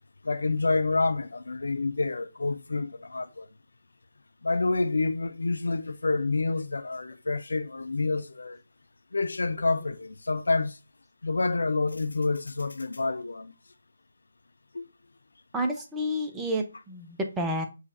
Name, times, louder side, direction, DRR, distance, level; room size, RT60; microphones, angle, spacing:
voice 1, 0.2-3.5 4.4-8.6 9.1-10.8 11.2-13.5 14.7-14.8, left 3 dB, 65° left, 0.4 m, -28 dB
voice 2, 15.5-17.7, equal, 10° right, 0.6 m, -30 dB
6.4 x 3.2 x 2.5 m
figure-of-eight pair, 150°, 0 cm